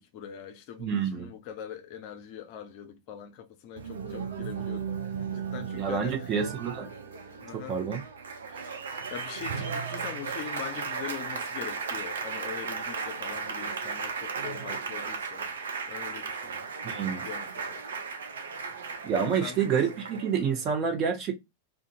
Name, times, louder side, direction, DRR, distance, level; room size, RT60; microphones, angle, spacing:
voice 1, 0.0-6.3 7.4-7.8 8.5-15.5 15.9-16.7 17.2-17.8 18.7-18.8 19.4-19.8, left 9 dB, 45° left, 0.5 m, -42 dB
voice 2, 0.8-1.3 5.8-6.9 7.5-8.0 16.8-17.2 19.0-21.3, right 7 dB, 30° right, 0.9 m, -28 dB
Applause, 3.8-20.7, right 5 dB, 65° right, 0.5 m, -36 dB
2.5 x 2.5 x 2.5 m
figure-of-eight pair, 90°, 0 cm